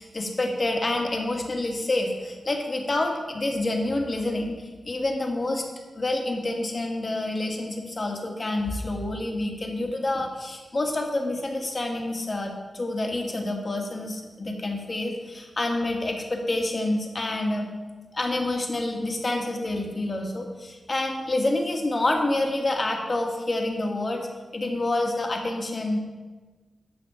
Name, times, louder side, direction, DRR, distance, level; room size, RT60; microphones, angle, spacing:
voice 1, 0.0-5.6 5.9-17.7 18.1-24.3 24.5-26.0, left 2 dB, 35° left, 2 dB, 1.6 m, -28 dB
12.0 x 4.0 x 6.8 m, 1.3 s
wide cardioid pair, 90°, 0 cm